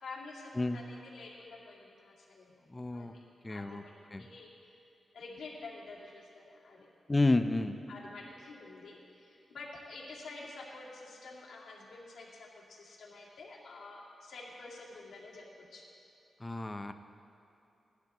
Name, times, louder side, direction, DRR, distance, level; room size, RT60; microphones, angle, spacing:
voice 1, 0.0-2.5 2.9-3.2 3.5-4.8 5.1-6.9 7.9-15.9, left 3 dB, 85° left, -4 dB, 2.3 m, -49 dB
voice 2, 2.7-3.1 3.4-3.8 4.1-4.3 7.1-7.8 16.4-16.9, left 2 dB, 20° left, 8 dB, 0.5 m, -30 dB
18.0 x 11.5 x 3.0 m, 2.8 s
wide cardioid pair, 120°, 0 cm